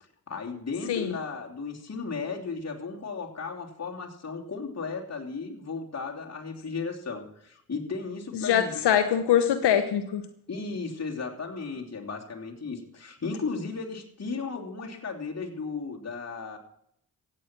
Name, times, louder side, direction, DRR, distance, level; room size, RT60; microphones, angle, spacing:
voice 1, 0.3-9.0 10.5-16.6, left 4 dB, 40° left, 0 dB, 3.0 m, -35 dB
voice 2, 8.3-10.3, left 9 dB, 80° left, 8 dB, 1.1 m, -23 dB
15.0 x 9.0 x 6.0 m, 0.71 s
supercardioid pair, 50°, 40 cm